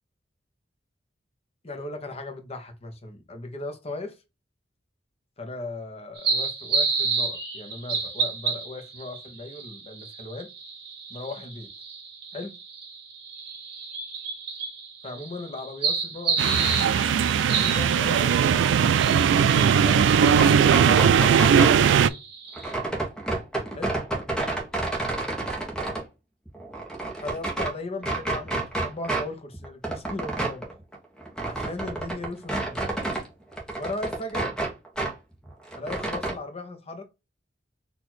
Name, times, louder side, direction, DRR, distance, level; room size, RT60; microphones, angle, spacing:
voice 1, 1.6-4.2 5.4-10.5 11.1-11.7 12.3-12.5 15.0-16.6 17.4-21.8 23.7-24.0 27.2-30.6 31.4-32.9 33.7-34.5 35.7-37.0, left 2 dB, 35° left, 0.9 m, -37 dB
sound 1, 6.2-22.7, right 5 dB, 60° right, 1.5 m, -31 dB
sound 2, 16.4-22.1, right 7 dB, 80° right, 0.3 m, -19 dB
sound 3, 20.4-21.8 22.5-26.0 26.5-27.7 28.0-29.3 29.5-33.3 33.5-35.1 35.4-36.3, right 2 dB, 5° left, 1.1 m, -29 dB
4.4 x 2.7 x 4.3 m
head